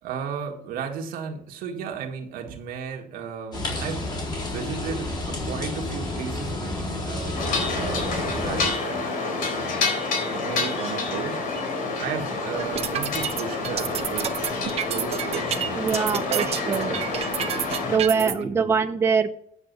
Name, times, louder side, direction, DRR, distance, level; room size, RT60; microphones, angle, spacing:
voice 1, 0.0-9.8 10.3-11.4 12.0-14.5 14.9-15.8 16.3-17.0 17.8-18.5, right 7 dB, 75° right, 3 dB, 1.9 m, -35 dB
sound 1, 3.5-8.7, left 2 dB, 30° left, 3.8 m, -30 dB
sound 2, 7.3-18.0, left 3 dB, 70° left, 3.9 m, -28 dB
sound 3, 12.6-18.3, right 9 dB, 45° right, 0.9 m, -29 dB
voice 2, 15.7-17.0 17.9-19.3, right 5 dB, 15° right, 7 dB, 0.5 m, -23 dB
9.9 x 7.5 x 5.5 m, 0.66 s
cardioid pair, 160°, 15 cm